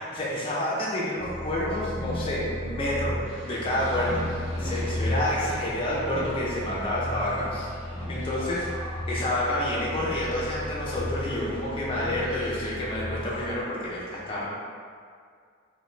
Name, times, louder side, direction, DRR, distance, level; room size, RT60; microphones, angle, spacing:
voice 1, 0.0-3.2 3.4-7.7 8.1-8.7 9.1-14.5, left 1 dB, 30° left, -6 dB, 0.5 m, -29 dB
sound 1, 1.1-13.6, left 1 dB, 40° right, 1.0 m, -34 dB
sound 2, 3.2-12.2, equal, 80° right, 0.9 m, -46 dB
sound 3, 4.5-8.7, equal, 15° right, 0.8 m, -45 dB
2.6 x 2.2 x 3.1 m, 2.1 s
head